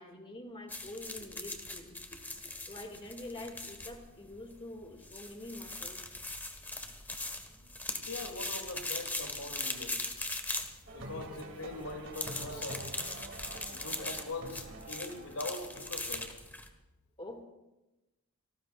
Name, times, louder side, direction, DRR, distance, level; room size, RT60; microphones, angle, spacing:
voice 1, 0.0-2.2 2.7-6.0 17.2-17.4, left 1 dB, 25° left, 4 dB, 2.1 m, -46 dB
sound 1, 0.7-16.7, left 2 dB, 10° left, 1.4 m, -40 dB
voice 2, 7.9-10.2 10.9-12.9 13.7-16.3, left 3 dB, 85° left, 4 dB, 2.7 m, -42 dB
sound 2, 10.9-16.0, right 2 dB, 60° right, 2.4 m, -46 dB
28.5 x 18.5 x 2.4 m, 1.0 s
head